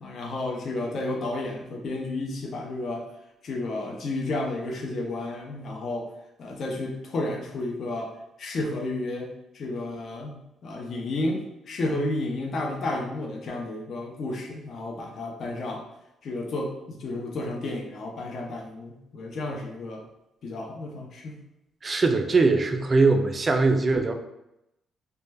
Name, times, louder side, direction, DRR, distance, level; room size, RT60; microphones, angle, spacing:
voice 1, 0.0-3.0 3.4-6.1 6.4-8.1 8.4-15.8 16.2-20.0 20.4-21.4, left 2 dB, 55° left, -1 dB, 0.5 m, -32 dB
voice 2, 21.8-24.1, right 3 dB, 30° right, 6 dB, 0.3 m, -21 dB
2.2 x 2.1 x 3.2 m, 0.88 s
cardioid pair, 90°, 0 cm